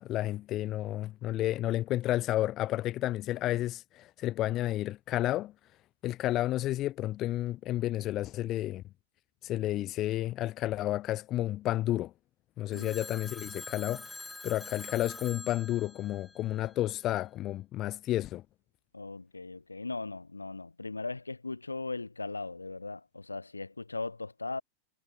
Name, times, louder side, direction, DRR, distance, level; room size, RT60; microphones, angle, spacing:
voice 1, 0.0-5.5 6.0-8.8 9.4-12.1 12.6-14.1 14.4-18.4, left 14 dB, 35° left, 0.4 m, -31 dB
Telephone, 12.7-17.0, left 2 dB, 5° left, 1.6 m, -45 dB
voice 2, 18.9-24.6, left 3 dB, 80° left, 5.2 m, -38 dB
figure-of-eight pair, 90°, 0 cm